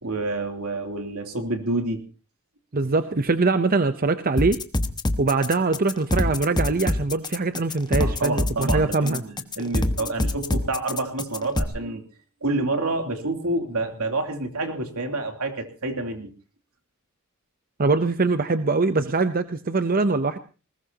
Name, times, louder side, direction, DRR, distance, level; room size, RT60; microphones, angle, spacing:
voice 1, 0.0-2.0 8.0-12.0 12.4-16.3, right 2 dB, 80° right, 3 dB, 3.1 m, -28 dB
voice 2, 2.7-4.6 5.2-9.2 17.8-20.4, right 3 dB, 40° right, 10 dB, 0.8 m, -23 dB
sound 1, 4.4-11.6, left 1 dB, 20° left, 1.1 m, -25 dB
20.0 x 19.5 x 2.9 m, 0.34 s
head